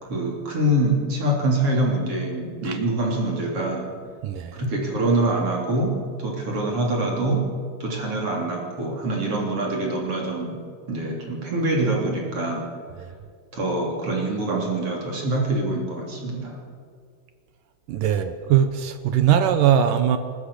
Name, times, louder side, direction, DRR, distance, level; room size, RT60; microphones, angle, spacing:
voice 1, 0.0-3.9 4.5-7.5 7.8-10.6 10.9-12.7 13.5-16.6, right 1 dB, 40° right, 3.9 m, -25 dB
voice 2, 4.2-4.6 13.0-13.1 17.9-20.2, right 9 dB, 70° right, 2.3 m, -20 dB
24.5 x 13.5 x 8.5 m
omnidirectional pair, 4.3 m